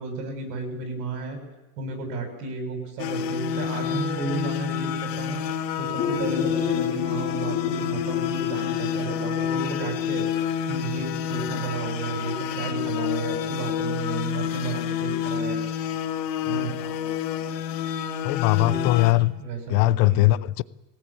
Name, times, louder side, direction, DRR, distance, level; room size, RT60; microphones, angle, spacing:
voice 1, 0.0-1.4 1.8-5.4 5.8-10.3 10.7-15.6 16.4-16.7 18.6-19.1 19.4-20.4, right 4 dB, 75° right, 7.1 m, -33 dB
sound 1, 3.0-19.1, left 9 dB, 75° left, 2.3 m, -28 dB
sound 2, 6.0-11.5, left 5 dB, 20° left, 4.0 m, -33 dB
voice 2, 16.8-17.2 18.2-19.3 19.7-20.6, left 19 dB, 50° left, 0.7 m, -21 dB
21.0 x 18.0 x 8.7 m
supercardioid pair, 125°, 49 cm